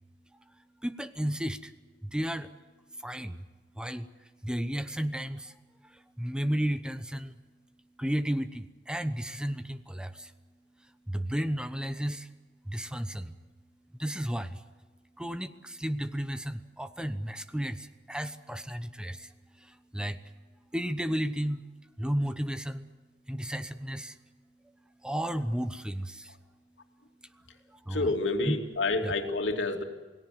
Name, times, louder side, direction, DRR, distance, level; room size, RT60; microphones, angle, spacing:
voice 1, 0.8-1.7 2.0-2.5 3.0-3.4 3.8-4.1 4.4-5.5 5.9-7.3 8.0-10.3 11.1-12.3 12.7-13.4 14.0-14.6 15.2-19.3 19.6-20.2 20.7-21.6 22.0-22.9 23.3-24.2 25.0-26.3 27.7-28.1 28.4-28.6 29.0-29.1, equal, 5° right, 10 dB, 0.9 m, -33 dB
voice 2, 27.9-29.8, left 2 dB, 85° left, 4 dB, 2.8 m, -28 dB
28.0 x 18.5 x 7.8 m, 1.3 s
head